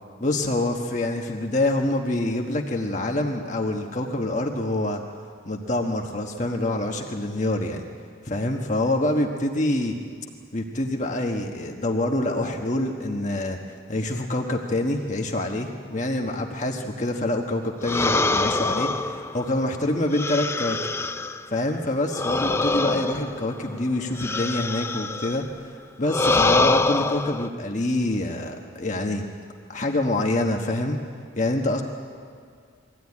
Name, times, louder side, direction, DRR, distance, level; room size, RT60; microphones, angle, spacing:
voice 1, 0.2-5.0 5.5-7.8 8.2-10.0 10.5-13.6 13.9-21.1 21.5-29.2 29.7-31.0 31.4-31.8, left 1 dB, 35° left, 2 dB, 1.3 m, -26 dB
sound 1, 17.8-21.5 22.1-25.4 26.0-27.5, left 3 dB, 10° left, 0.5 m, -25 dB
22.5 x 15.5 x 9.7 m, 2.1 s
head